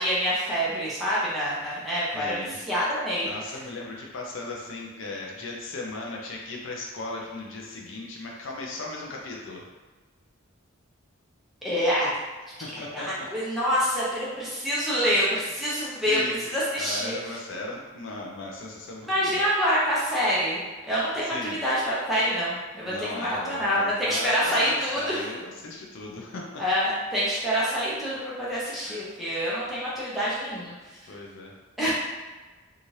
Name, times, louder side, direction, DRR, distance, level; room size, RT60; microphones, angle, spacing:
voice 1, 0.0-3.3 11.6-12.1 12.6-17.4 19.0-25.3 26.6-30.7 31.8-31.9, equal, ahead, -9 dB, 0.6 m, -26 dB
voice 2, 2.1-2.6 3.2-9.6 12.6-13.1 15.7-16.5 16.8-19.4 21.2-21.6 22.8-26.6 28.8-29.0 31.1-31.5, left 2 dB, 65° left, -1 dB, 0.5 m, -37 dB
2.7 x 2.4 x 3.1 m, 1.3 s
head